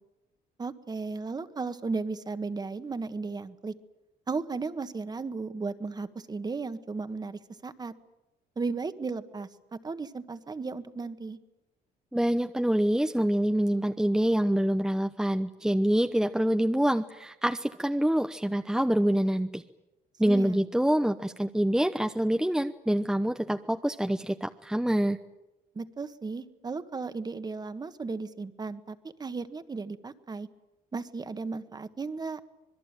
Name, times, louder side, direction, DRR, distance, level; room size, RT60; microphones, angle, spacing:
voice 1, 0.6-3.7 4.3-7.9 8.6-11.4 20.2-20.6 25.7-30.5 30.9-32.4, right 4 dB, 25° right, 11 dB, 1.6 m, -35 dB
voice 2, 12.1-19.6 20.2-25.2, right 1 dB, 5° right, 6 dB, 0.9 m, -26 dB
26.0 x 21.0 x 9.1 m, 0.96 s
cardioid pair, 110°, 17 cm